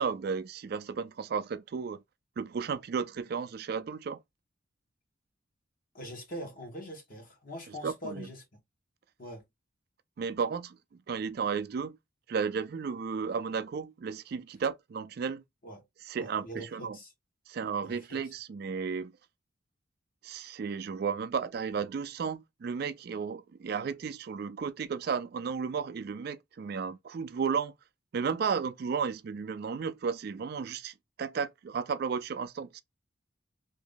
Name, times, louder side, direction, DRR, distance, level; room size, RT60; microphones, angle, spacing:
voice 1, 0.0-2.0 2.4-4.2 7.7-8.3 10.2-10.8 11.1-12.0 12.3-15.4 16.0-17.0 17.5-19.1 20.2-27.7 28.1-32.8, right 6 dB, 50° right, 0.3 m, -33 dB
voice 2, 5.9-8.4 9.2-9.4 15.6-15.8 16.2-17.1 17.8-18.2, equal, 45° left, 1.4 m, -43 dB
3.0 x 2.6 x 3.7 m
head